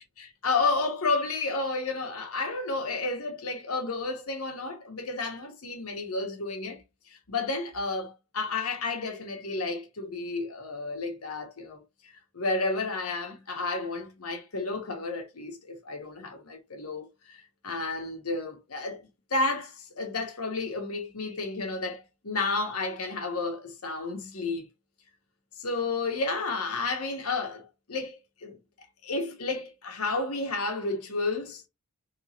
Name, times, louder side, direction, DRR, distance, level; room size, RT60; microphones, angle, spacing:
voice 1, 0.2-11.8 12.3-24.6 25.6-28.6 29.0-31.6, left 3 dB, 90° left, 1.2 m, -31 dB
3.5 x 3.1 x 2.7 m
head